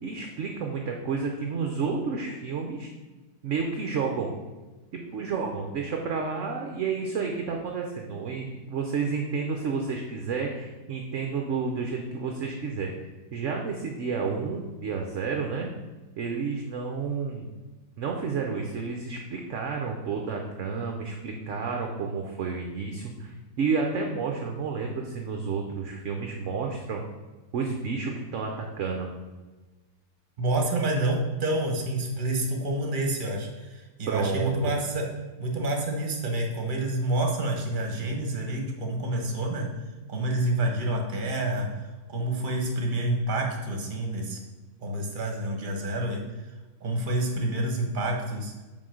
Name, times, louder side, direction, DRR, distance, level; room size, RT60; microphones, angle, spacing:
voice 1, 0.0-2.9 3.4-4.3 4.9-12.9 13.3-15.7 16.2-17.5 18.0-23.3 23.6-27.0 27.5-29.1 34.1-34.7, right 5 dB, 55° right, 2 dB, 0.9 m, -30 dB
voice 2, 30.4-35.1 35.4-39.7 40.1-41.7 42.1-44.4 44.8-46.2 46.8-48.5, right 1 dB, 30° right, 1 dB, 1.1 m, -28 dB
5.8 x 4.5 x 6.4 m, 1.2 s
omnidirectional pair, 1.9 m